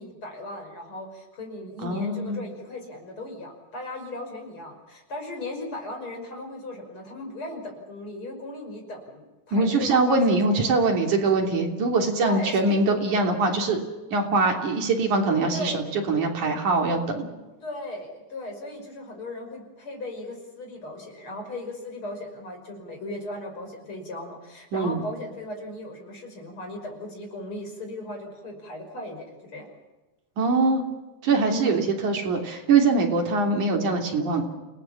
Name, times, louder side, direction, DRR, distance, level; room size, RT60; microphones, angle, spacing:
voice 1, 0.0-10.7 12.2-12.8 15.5-15.8 17.6-29.7 31.5-31.8, left 1 dB, 30° left, 3 dB, 6.1 m, -37 dB
voice 2, 1.8-2.4 9.5-13.8 14.1-17.3 24.7-25.0 30.4-30.8 31.2-34.4, right 3 dB, 50° right, 3 dB, 4.4 m, -23 dB
29.5 x 19.0 x 7.3 m, 1.2 s
omnidirectional pair, 4.7 m